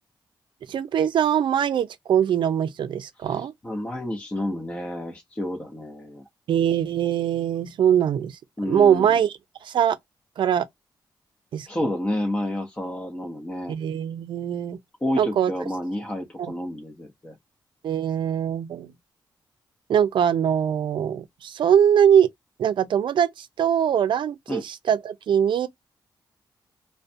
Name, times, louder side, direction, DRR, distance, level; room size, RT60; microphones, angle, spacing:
voice 1, 0.7-3.5 6.5-8.3 8.7-9.3 9.6-10.0 10.4-10.6 11.5-11.7 13.7-14.8 15.2-15.5 16.4-16.5 17.8-18.9 19.9-22.3 22.6-25.7, right 9 dB, 75° right, 0.5 m, -22 dB
voice 2, 3.2-6.2 8.6-9.1 11.7-13.7 15.0-17.3 24.5-24.6, left 1 dB, 15° left, 0.7 m, -30 dB
2.4 x 2.1 x 2.6 m
cardioid pair, 80°, 8 cm